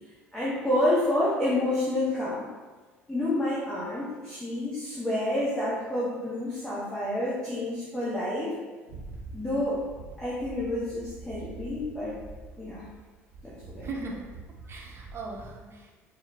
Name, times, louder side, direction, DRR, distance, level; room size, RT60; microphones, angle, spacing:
voice 1, 0.3-2.4 3.1-8.5 9.3-9.8 10.2-12.1 12.6-12.8 13.4-13.8, left 1 dB, 10° left, -9 dB, 1.0 m, -29 dB
sound 1, 8.9-13.1 13.3-15.5, right 3 dB, 70° right, 0.8 m, -45 dB
voice 2, 13.8-14.3 14.7-16.1, right 3 dB, 30° right, -1 dB, 0.7 m, -39 dB
4.4 x 2.1 x 3.4 m, 1.3 s
figure-of-eight pair, 60°, 8 cm